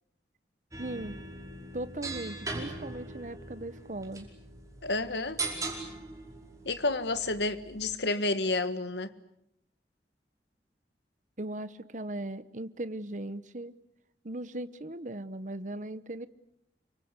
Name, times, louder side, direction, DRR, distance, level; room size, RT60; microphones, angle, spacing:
sound 1, 0.7-7.9, right 3 dB, 20° right, 5.1 m, -40 dB
voice 1, 0.8-1.2 1.7-4.3 11.4-13.8 14.2-16.3, right 1 dB, 45° right, 14 dB, 1.0 m, -38 dB
voice 2, 4.8-5.4 6.6-9.1, left 2 dB, 80° left, 12 dB, 1.7 m, -30 dB
29.0 x 25.0 x 8.3 m, 0.80 s
head